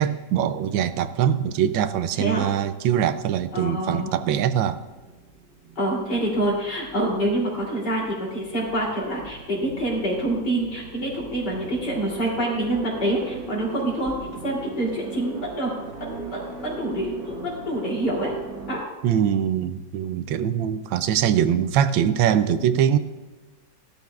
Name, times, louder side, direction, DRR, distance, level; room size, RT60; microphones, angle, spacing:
voice 1, 0.0-4.8 19.0-23.0, right 9 dB, 85° right, 12 dB, 1.4 m, -22 dB
voice 2, 2.2-2.5 3.5-4.1 5.8-14.1 14.4-18.3 18.7-18.8, right 1 dB, 60° left, -3 dB, 3.7 m, -26 dB
sound 1, 4.8-18.8, right 4 dB, 55° right, 1.6 m, -39 dB
16.0 x 12.0 x 2.4 m, 1.2 s
omnidirectional pair, 2.1 m